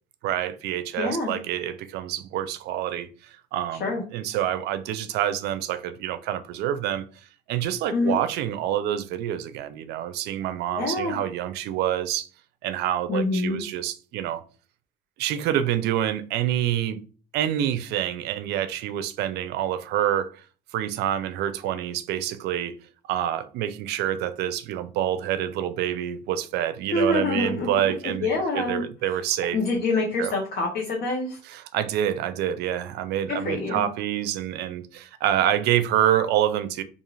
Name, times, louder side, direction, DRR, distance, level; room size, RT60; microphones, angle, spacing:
voice 1, 0.2-3.1 3.5-7.1 7.5-12.3 12.6-14.4 15.2-17.0 17.3-20.3 20.7-22.7 23.1-29.6 30.2-30.3 31.5-36.8, right 11 dB, 80° right, 0.4 m, -27 dB
voice 2, 1.0-1.3 3.8-4.0 7.9-8.2 10.8-11.2 13.1-13.6 26.9-28.8 29.5-31.4 33.3-33.8, left 3 dB, 60° left, 0.9 m, -26 dB
2.5 x 2.4 x 3.1 m
cardioid pair, 110°, 17 cm